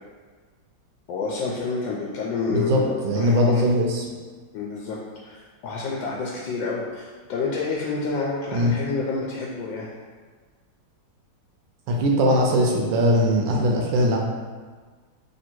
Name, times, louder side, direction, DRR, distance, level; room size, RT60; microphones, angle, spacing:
voice 1, 1.1-3.7 4.5-9.9, left 4 dB, 80° left, -3 dB, 1.3 m, -29 dB
voice 2, 2.5-4.1 8.5-8.7 11.9-14.2, equal, 85° right, -1 dB, 1.3 m, -20 dB
3.4 x 2.7 x 4.4 m, 1.5 s
omnidirectional pair, 2.0 m